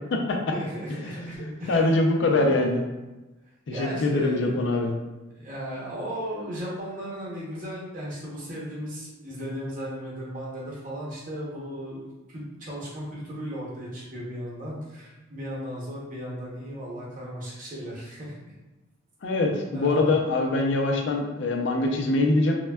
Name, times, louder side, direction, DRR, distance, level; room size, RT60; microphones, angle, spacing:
voice 1, 0.5-2.0 2.3-2.6 3.7-4.9 5.3-18.4 19.7-20.1, equal, 40° right, -5 dB, 0.8 m, -36 dB
voice 2, 1.2-2.8 3.8-4.9 19.2-22.6, left 2 dB, 60° left, 2 dB, 0.4 m, -23 dB
3.4 x 2.2 x 2.2 m, 1.1 s
head